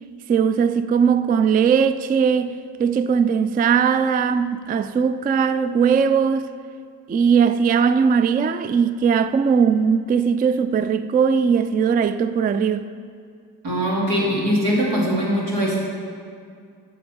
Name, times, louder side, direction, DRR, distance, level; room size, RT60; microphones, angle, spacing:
voice 1, 0.3-6.5 7.1-12.8, right 6 dB, 25° right, 0.3 m, -19 dB
voice 2, 13.6-15.8, equal, 85° right, 2.7 m, -21 dB
7.7 x 6.3 x 6.9 m
supercardioid pair, 50°, 42 cm